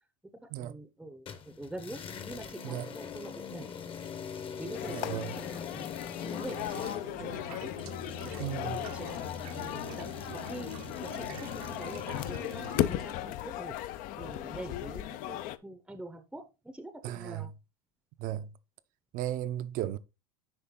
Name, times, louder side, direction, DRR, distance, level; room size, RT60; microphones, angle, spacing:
voice 1, 0.6-2.0 2.3-3.7 4.6-7.7 8.2-10.1 10.5-10.7 11.0-13.7 14.2-17.5, right 1 dB, 5° right, 0.7 m, -45 dB
sound 1, 1.3-13.0, left 7 dB, 25° left, 0.9 m, -43 dB
sound 2, 4.7-15.6, left 14 dB, 45° left, 0.5 m, -37 dB
voice 2, 4.9-5.4 8.4-8.8 17.0-17.5 18.2-18.5 19.1-20.0, right 12 dB, 45° right, 0.6 m, -35 dB
sound 3, 6.4-13.1, right 11 dB, 80° right, 1.1 m, -47 dB
10.0 x 3.4 x 3.7 m
supercardioid pair, 130°, 19 cm